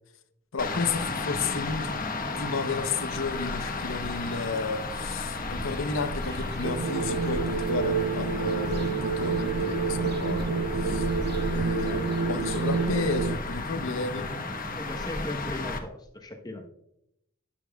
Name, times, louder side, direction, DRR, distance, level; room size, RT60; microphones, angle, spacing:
voice 1, 0.5-1.9 2.4-10.6 10.8-11.1 11.5-14.3, left 4 dB, 85° left, 0.8 m, -32 dB
sound 1, 0.6-15.8, left 2 dB, 45° left, 1.1 m, -33 dB
sound 2, 5.7-12.9, right 1 dB, 55° right, 1.0 m, -44 dB
sound 3, 6.6-13.4, right 5 dB, 75° right, 0.4 m, -28 dB
voice 2, 11.8-12.2 14.8-16.7, left 1 dB, 20° left, 1.0 m, -38 dB
13.0 x 10.0 x 2.3 m
head